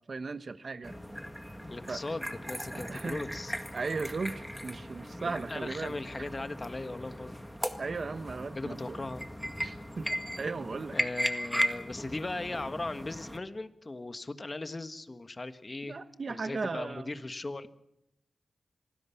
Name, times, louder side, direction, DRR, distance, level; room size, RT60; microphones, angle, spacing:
voice 1, 0.1-1.0 1.9-2.0 2.7-3.2 3.7-6.0 7.8-9.0 9.6-10.1 10.4-11.0 15.8-17.1, right 4 dB, 55° right, 13 dB, 1.2 m, -36 dB
sound 1, 0.8-13.4, equal, ahead, 1.8 m, -37 dB
voice 2, 1.6-3.5 5.2-7.4 8.5-9.2 10.9-16.0 16.3-17.7, left 2 dB, 30° left, 11 dB, 1.5 m, -38 dB
27.0 x 19.5 x 5.9 m, 0.83 s
wide cardioid pair, 90°, 0 cm